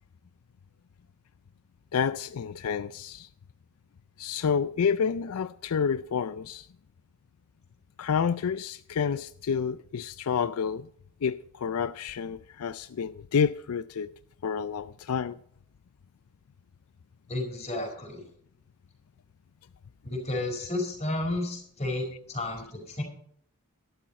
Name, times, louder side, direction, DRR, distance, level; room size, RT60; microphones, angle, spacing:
voice 1, 1.9-3.3 4.2-6.7 8.0-10.9 11.2-14.1 14.4-15.4, left 6 dB, 80° left, 0.4 m, -29 dB
voice 2, 17.3-18.2 20.0-23.0, left 1 dB, 30° left, 4.7 m, -32 dB
12.5 x 12.0 x 4.2 m
head